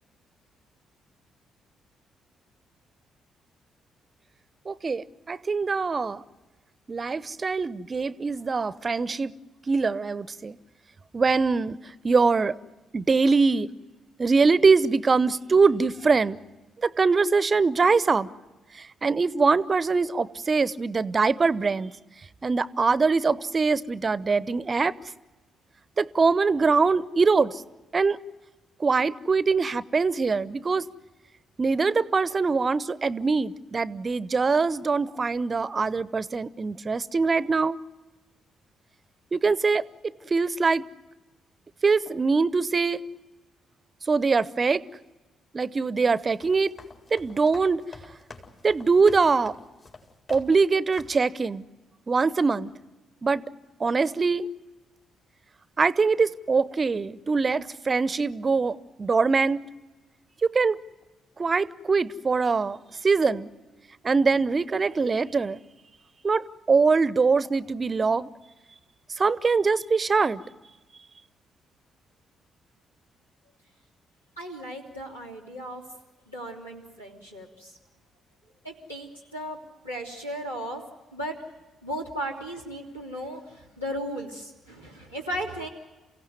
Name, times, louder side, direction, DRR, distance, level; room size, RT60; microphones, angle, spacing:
voice 1, 4.7-6.2 6.9-9.3 9.7-10.6 11.1-12.6 12.9-13.7 14.2-16.4 16.8-18.3 18.7-21.9 22.4-24.9 26.0-27.6 27.9-28.2 28.8-30.8 31.6-37.8 39.3-39.8 40.2-40.8 41.8-43.0 44.1-44.8 45.5-46.7 47.1-47.8 48.6-49.5 50.3-51.7 52.1-52.7 53.2-53.4 53.8-54.5 55.8-59.6 60.4-60.8 61.4-63.5 64.0-65.6 66.2-68.3 69.2-70.4, right 4 dB, 35° right, 0.8 m, -23 dB
sound 1, 46.2-50.7 50.9-51.3, left 3 dB, 45° left, 4.1 m, -47 dB
voice 2, 74.4-75.8 76.3-77.8 78.6-79.6 79.8-80.8 81.1-81.4 81.8-85.7, equal, 90° left, 3.1 m, -36 dB
29.5 x 16.5 x 9.6 m
figure-of-eight pair, 40°, 0 cm